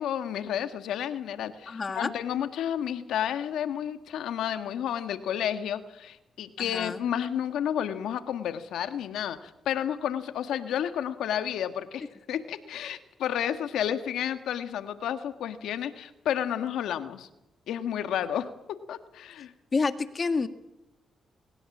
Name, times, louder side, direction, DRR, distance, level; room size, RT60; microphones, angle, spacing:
voice 1, 0.0-17.3 17.7-19.5, left 9 dB, 85° left, 9 dB, 1.6 m, -31 dB
voice 2, 1.7-2.1 6.6-7.0 19.7-20.5, left 4 dB, 40° left, 9 dB, 1.8 m, -28 dB
21.5 x 19.0 x 7.4 m, 0.93 s
cardioid pair, 70°, 0 cm